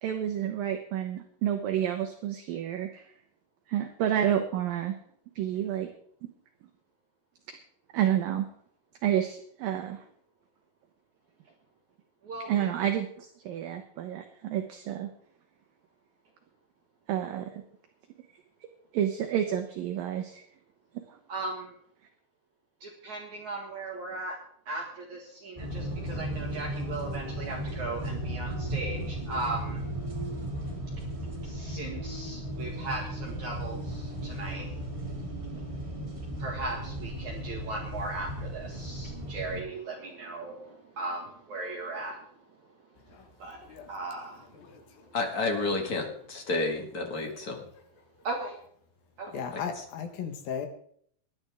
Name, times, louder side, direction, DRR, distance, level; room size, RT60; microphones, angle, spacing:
voice 1, 0.0-3.1 3.7-5.0 5.4-5.9 6.2-6.3 7.5-7.6 7.9-8.5 9.0-10.1 12.5-15.1 17.1-17.6 18.9-20.4 20.9-21.2, right 10 dB, 70° right, 5 dB, 2.4 m, -30 dB
voice 2, 12.2-12.7 21.3-21.7 22.8-24.4 24.7-29.9 31.4-34.7 36.4-42.2 43.4-43.6 43.9-44.4 48.2-48.6 49.2-49.3, right 2 dB, 55° right, -1 dB, 2.7 m, -37 dB
sound 1, 25.6-39.6, right 1 dB, 25° right, 0.7 m, -36 dB
voice 3, 43.1-43.9 44.4-45.1 45.7-45.8 46.1-46.3 47.7-47.8 49.3-50.7, left 7 dB, 65° left, 6 dB, 3.0 m, -38 dB
voice 4, 45.1-47.6, left 3 dB, 40° left, 1 dB, 1.3 m, -30 dB
20.5 x 11.0 x 3.5 m, 0.63 s
omnidirectional pair, 4.7 m